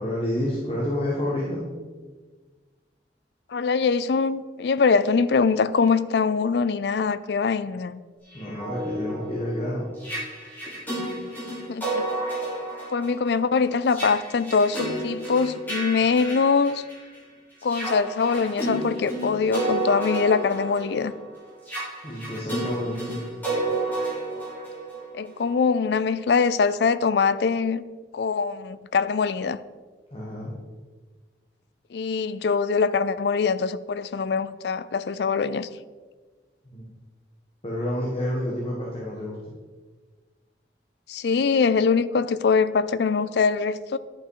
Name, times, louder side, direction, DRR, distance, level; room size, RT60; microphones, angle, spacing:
voice 1, 0.0-1.7 8.3-9.9 22.0-23.2 30.1-30.5 36.7-36.8 37.6-39.4, left 1 dB, 30° left, 1.4 m, -29 dB
voice 2, 3.5-8.0 11.7-12.0 12.9-16.8 17.6-21.1 25.1-27.8 28.1-29.6 31.9-35.7 41.1-44.0, left 5 dB, 65° left, 0.4 m, -23 dB
sound 1, 8.3-17.2 17.6-25.4, right 2 dB, 10° left, 2.9 m, -31 dB
11.0 x 5.6 x 4.7 m
head